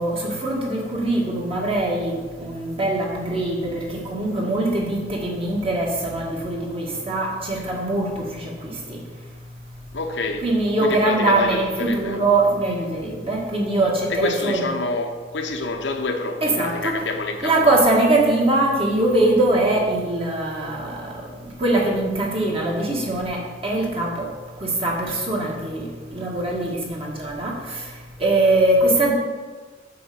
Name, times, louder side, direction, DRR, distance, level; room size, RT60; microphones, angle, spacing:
voice 1, 0.0-9.0 10.4-14.7 16.4-17.0 17.4-24.3 24.6-27.8 28.2-29.1, right 2 dB, 30° right, 1.8 m, -22 dB
voice 2, 9.9-10.4 10.8-12.2 14.1-17.7, left 3 dB, 80° left, 1.0 m, -27 dB
7.7 x 4.9 x 7.0 m
head